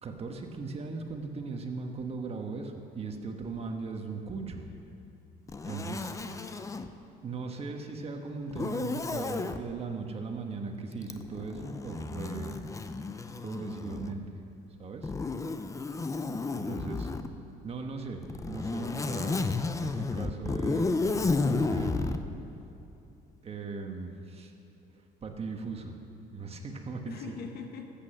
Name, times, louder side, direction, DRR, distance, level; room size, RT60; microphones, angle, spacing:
voice 1, 0.0-4.7 5.7-6.1 7.2-12.6 13.4-14.4 14.8-15.1 16.5-17.1 17.6-22.2 23.4-24.5 25.2-26.0 26.3-27.2, right 4 dB, 35° right, 4 dB, 1.4 m, -38 dB
Zipper (clothing), 5.5-6.9 8.5-9.6 11.0-14.3 15.0-17.3 18.2-22.2, left 3 dB, 20° left, 0.6 m, -32 dB
voice 2, 6.0-6.6 16.4-17.0 27.1-27.9, left 5 dB, 70° left, 5 dB, 1.4 m, -44 dB
13.5 x 8.6 x 6.6 m, 2.8 s
cardioid pair, 110°, 17 cm